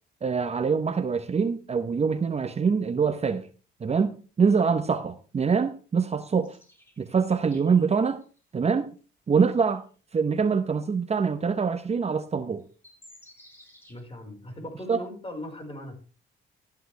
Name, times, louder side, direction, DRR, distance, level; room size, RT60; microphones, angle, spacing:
voice 1, 0.2-3.5 3.8-6.6 7.0-8.2 8.5-8.9 9.3-9.8 10.1-12.6 14.9-15.0, right 5 dB, 35° right, 0.9 m, -24 dB
sound 1, 6.4-8.4 9.0-9.1 9.6-9.8 10.7-10.8 12.2-12.3 12.6-14.0, equal, 10° left, 6.3 m, -55 dB
voice 2, 13.9-16.0, left 1 dB, 30° left, 4.6 m, -39 dB
13.0 x 10.5 x 3.3 m
cardioid pair, 90°, 20 cm